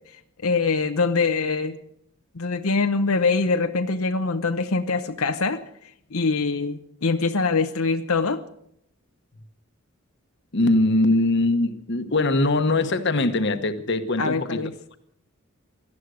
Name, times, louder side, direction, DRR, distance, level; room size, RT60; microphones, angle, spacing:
voice 1, 0.4-1.8 2.3-5.6 6.1-8.4 14.2-15.0, left 4 dB, 90° left, 0.9 m, -23 dB
voice 2, 10.5-14.7, left 2 dB, 55° left, 1.1 m, -22 dB
18.0 x 12.5 x 6.4 m
head